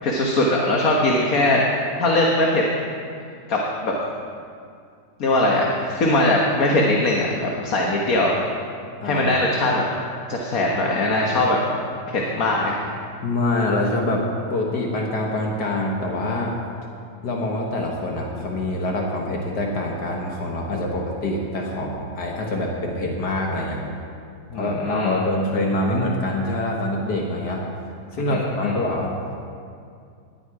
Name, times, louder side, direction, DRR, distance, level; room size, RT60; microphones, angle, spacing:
voice 1, 0.0-1.6 2.0-2.6 3.5-3.9 5.2-8.4 9.0-9.9 10.3-11.6 12.1-12.7 24.5-25.1 28.3-28.7, left 1 dB, 60° left, -2 dB, 1.7 m, -21 dB
voice 2, 9.0-9.5 13.2-16.6 17.2-23.8 24.5-27.7 28.1-29.2, left 1 dB, 80° left, -1 dB, 2.0 m, -25 dB
18.5 x 11.0 x 4.8 m, 2.3 s
omnidirectional pair, 1.7 m